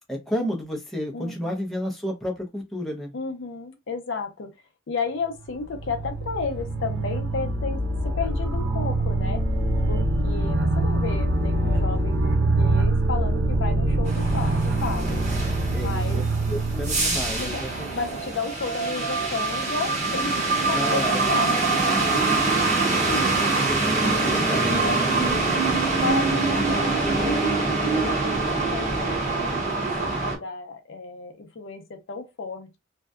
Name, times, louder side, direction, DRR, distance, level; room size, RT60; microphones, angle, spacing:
voice 1, 0.1-3.1 15.7-16.2 16.5-17.9 20.7-21.2 23.1-23.2 23.7-23.8 24.2-24.7 25.1-25.7, equal, ahead, 0.5 m, -31 dB
voice 2, 1.1-1.5 3.1-4.5 4.9-9.4 9.9-15.3 15.7-16.2 17.3-21.6 22.6-22.7 23.1-23.4 23.9-25.6 26.0-32.8, left 4 dB, 60° left, 0.5 m, -33 dB
sound 1, 5.4-18.3, right 2 dB, 60° right, 0.4 m, -24 dB
sound 2, 14.0-30.3, right 3 dB, 35° right, 0.9 m, -24 dB
2.6 x 2.1 x 2.3 m
head